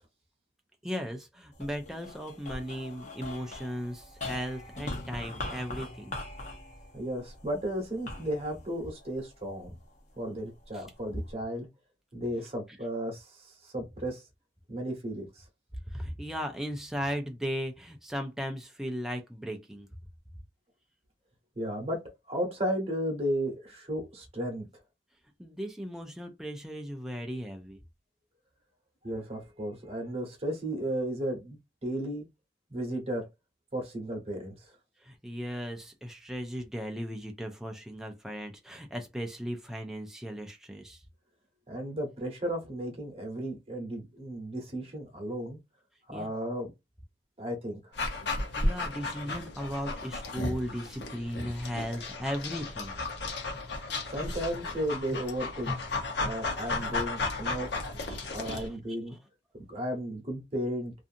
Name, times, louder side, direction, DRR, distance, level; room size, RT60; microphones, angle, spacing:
voice 1, 0.8-6.1 10.7-10.8 15.9-19.9 25.4-27.8 35.0-41.0 46.1-46.3 48.6-52.9 58.1-59.0, equal, 5° right, 0.3 m, -37 dB
sound 1, 1.5-10.0 10.6-11.3, left 2 dB, 45° left, 0.8 m, -42 dB
voice 2, 6.9-9.8 10.2-11.7 12.1-14.2 14.7-15.4 21.6-22.0 22.3-24.7 29.0-32.2 32.7-33.3 33.7-34.7 41.7-45.6 46.1-46.7 47.4-48.0 54.1-55.8 56.2-57.8 58.3-59.2 59.7-60.9, equal, 35° right, 1.0 m, -34 dB
Dog, 48.0-58.7, left 2 dB, 75° left, 0.8 m, -34 dB
2.5 x 2.5 x 2.5 m
head